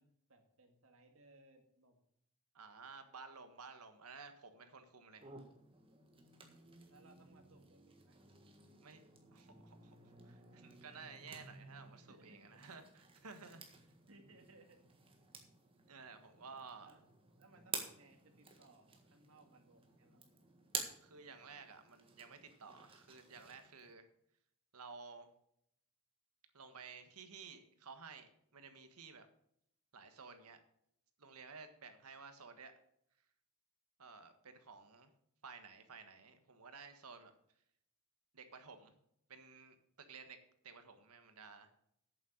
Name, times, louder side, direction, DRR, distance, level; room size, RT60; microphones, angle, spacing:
voice 1, 0.0-2.0 6.9-8.2 12.1-12.4 12.7-12.9 14.1-14.8 16.8-17.0 17.4-20.2, right 2 dB, 65° right, 4 dB, 1.9 m, -64 dB
voice 2, 2.5-5.3 8.8-9.0 9.3-13.9 15.9-16.9 21.0-24.1 24.7-25.3 26.5-29.3 29.9-30.6 31.2-32.7 34.0-35.1 35.4-37.3 38.3-38.9 39.3-41.7, right 5 dB, 85° right, 8 dB, 1.5 m, -54 dB
sound 1, 5.2-23.9, right 5 dB, 25° right, 1.6 m, -52 dB
8.6 x 7.7 x 6.5 m, 0.73 s
head